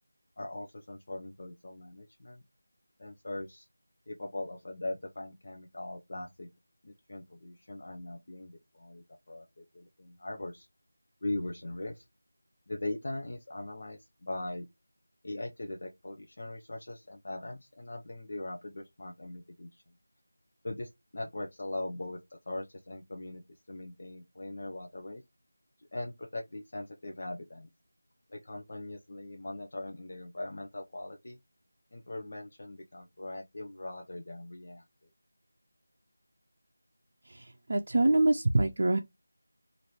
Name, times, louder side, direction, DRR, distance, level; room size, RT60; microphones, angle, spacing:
voice 1, 0.4-2.4 3.0-3.7 4.1-6.5 6.8-10.7 11.2-12.1 12.7-14.7 15.2-19.8 20.6-23.4 23.7-25.2 25.8-27.7 28.3-31.4 31.9-35.1, left 1 dB, 50° left, 0.6 m, -40 dB
voice 2, 37.2-39.0, right 2 dB, 50° right, 0.5 m, -25 dB
3.1 x 2.6 x 4.3 m
figure-of-eight pair, 170°, 0 cm